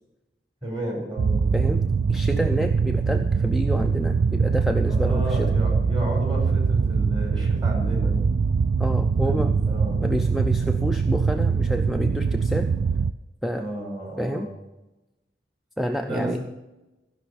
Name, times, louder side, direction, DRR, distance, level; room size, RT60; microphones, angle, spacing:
voice 1, 0.6-1.4 4.0-4.2 4.8-8.1 9.2-10.0 13.5-14.5 16.1-16.4, right 1 dB, 25° right, -1 dB, 4.9 m, -32 dB
sound 1, 1.2-13.1, right 5 dB, 80° right, 0.4 m, -23 dB
voice 2, 1.5-5.5 8.8-9.6 10.0-12.7 13.4-13.7 14.2-14.5 15.8-16.4, equal, ahead, 6 dB, 0.4 m, -28 dB
15.0 x 5.7 x 8.6 m, 1.0 s
head